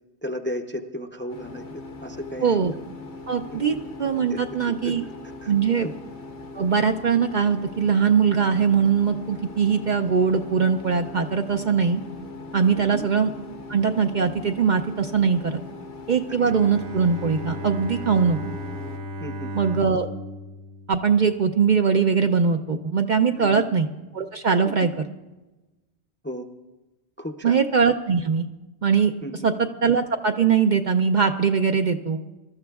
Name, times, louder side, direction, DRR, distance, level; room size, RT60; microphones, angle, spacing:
voice 1, 0.2-1.6 2.0-2.6 3.5-3.8 4.3-4.4 4.8-4.9 5.4-5.5 5.8-5.9 12.8-13.0 19.2-19.5 23.4-23.6 24.6-24.9 26.2-26.4 27.2-27.6 29.2-29.5, equal, 15° left, 4 dB, 0.5 m, -34 dB
sound 1, 1.3-19.0, left 3 dB, 85° left, 1.7 m, -40 dB
voice 2, 2.4-2.7 3.3-5.0 5.5-5.9 6.5-12.0 12.5-13.3 13.7-15.6 16.1-18.4 19.5-20.1 20.9-23.9 24.1-24.9 27.4-28.5 28.8-29.1 29.4-32.2, right 6 dB, 55° right, 5 dB, 0.6 m, -21 dB
Bowed string instrument, 16.4-21.7, equal, 90° right, 1.0 m, -36 dB
26.0 x 13.0 x 2.4 m, 1.1 s
omnidirectional pair, 1.1 m